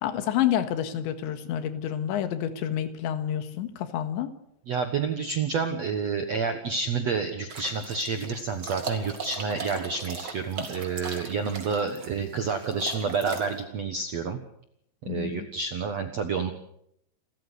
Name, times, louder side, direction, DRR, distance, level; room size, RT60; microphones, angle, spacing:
voice 1, 0.0-4.3 15.1-15.5, left 10 dB, 85° left, 10 dB, 3.9 m, -28 dB
voice 2, 4.7-14.4 15.0-16.5, right 5 dB, 70° right, 7 dB, 1.6 m, -29 dB
sound 1, 7.5-13.6, right 4 dB, 35° right, 2.5 m, -38 dB
28.5 x 14.0 x 8.2 m, 0.73 s
omnidirectional pair, 5.1 m